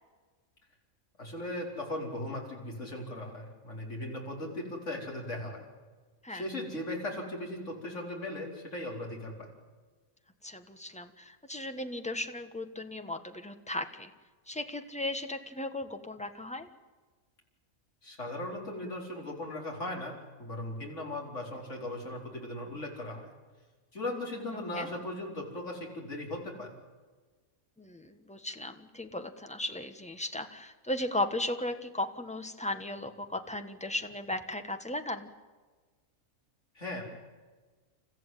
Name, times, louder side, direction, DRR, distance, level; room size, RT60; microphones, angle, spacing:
voice 1, 1.2-5.7 6.3-9.5 18.0-20.1 20.4-23.3 23.9-26.7 36.7-37.0, left 1 dB, 55° left, 0 dB, 4.8 m, -38 dB
voice 2, 10.4-14.1 14.5-16.7 24.7-24.9 27.8-35.3, left 1 dB, 5° left, 7 dB, 1.3 m, -36 dB
29.0 x 14.5 x 9.2 m, 1.4 s
omnidirectional pair, 1.5 m